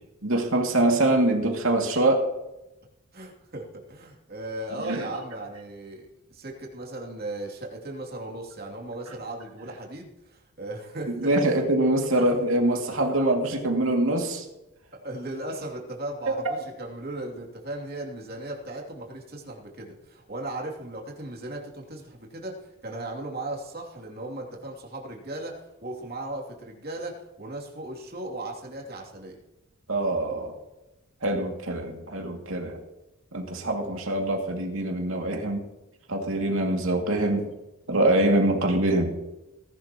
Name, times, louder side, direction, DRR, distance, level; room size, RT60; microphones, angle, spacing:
voice 1, 0.2-2.3 4.8-5.0 11.2-14.5 29.9-30.5 31.2-32.8 33.3-35.6 36.1-37.5 37.9-39.2, right 1 dB, 70° right, 2 dB, 2.4 m, -24 dB
voice 2, 3.1-11.6 13.0-13.1 14.9-25.6 25.8-29.4, right 1 dB, 45° right, -1 dB, 2.8 m, -37 dB
18.5 x 11.5 x 3.0 m, 0.96 s
head